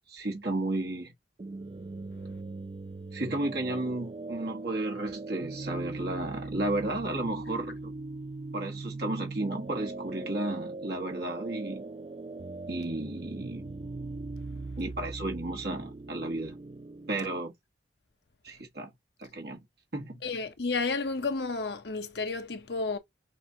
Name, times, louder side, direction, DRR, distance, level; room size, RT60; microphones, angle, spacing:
voice 1, 0.1-1.1 3.1-7.9 8.5-11.8 12.7-13.7 14.8-16.6 17.1-17.5 18.4-18.9 19.2-19.6 19.9-20.2, right 2 dB, 60° right, 1.5 m, -33 dB
sound 1, 1.4-17.4, right 3 dB, 30° right, 0.3 m, -40 dB
voice 2, 20.2-23.0, left 3 dB, 65° left, 0.7 m, -31 dB
5.9 x 2.6 x 2.7 m
head